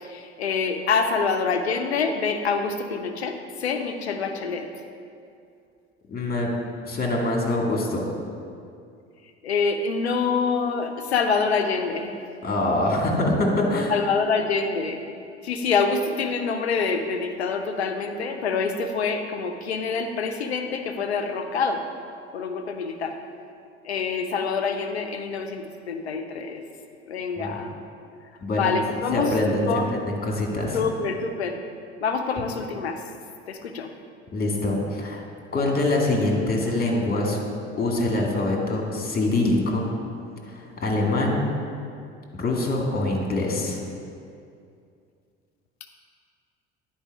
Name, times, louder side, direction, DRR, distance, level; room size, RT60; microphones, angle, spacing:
voice 1, 0.0-4.7 9.4-12.1 13.9-15.0 15.4-21.8 22.3-23.1 23.8-26.6 27.1-27.7 28.5-29.3 29.7-29.9 30.7-31.6 32.0-33.0 33.5-33.9, left 5 dB, 85° left, 6 dB, 0.7 m, -26 dB
voice 2, 6.1-6.5 6.8-8.0 12.4-13.9 27.4-27.6 28.4-28.7 29.1-30.8 34.3-35.2 35.5-37.4 37.8-39.8 40.5-41.4 42.3-43.8, left 2 dB, 30° left, 0 dB, 2.0 m, -24 dB
10.0 x 4.7 x 4.7 m, 2.4 s
hypercardioid pair, 65°, 31 cm